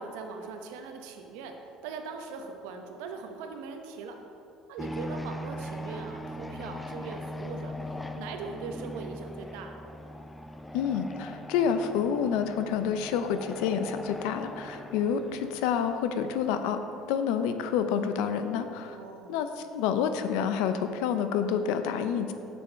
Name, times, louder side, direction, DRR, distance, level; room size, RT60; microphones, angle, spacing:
voice 1, 0.0-1.6 1.8-4.2 4.7-7.8 8.1-9.8 18.9-19.4, right 5 dB, 85° right, 4 dB, 0.8 m, -40 dB
sound 1, 4.8-16.9, left 1 dB, 10° left, 0.4 m, -40 dB
voice 2, 10.7-16.8 17.1-19.0 19.3-19.5 19.7-22.3, left 7 dB, 80° left, 9 dB, 0.5 m, -28 dB
6.8 x 6.3 x 4.4 m, 2.7 s
cardioid pair, 110°, 0 cm